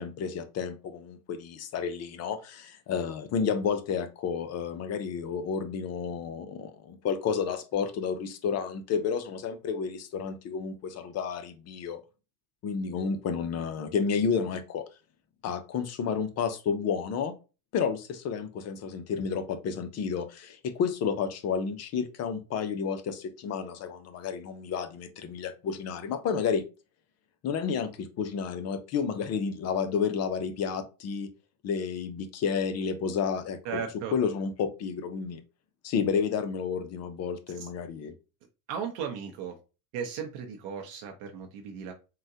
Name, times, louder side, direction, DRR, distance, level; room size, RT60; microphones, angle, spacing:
voice 1, 0.0-12.0 12.6-14.9 15.4-17.3 17.7-26.6 27.4-31.3 31.6-33.8 34.1-35.4 35.8-38.2, left 6 dB, 35° left, 0.5 m, -31 dB
voice 2, 33.6-34.1 37.5-37.7 38.7-39.6 39.9-41.9, right 7 dB, 55° right, 0.7 m, -36 dB
3.8 x 2.2 x 2.6 m
supercardioid pair, 105°, 49 cm